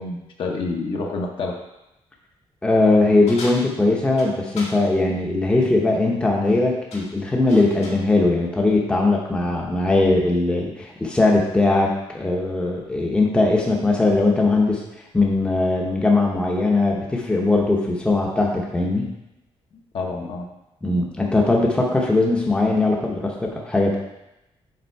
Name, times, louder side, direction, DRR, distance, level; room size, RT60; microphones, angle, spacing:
voice 1, 0.0-1.6 19.9-20.5, left 3 dB, 55° left, 1 dB, 1.0 m, -28 dB
voice 2, 2.6-14.8 15.1-19.1 20.8-24.0, left 2 dB, 10° left, -1 dB, 0.8 m, -20 dB
sound 1, 3.3-4.8 6.3-6.6 6.9-8.1, left 2 dB, 75° left, 1.8 m, -38 dB
6.8 x 4.1 x 4.6 m, 0.90 s
wide cardioid pair, 175°, 11 cm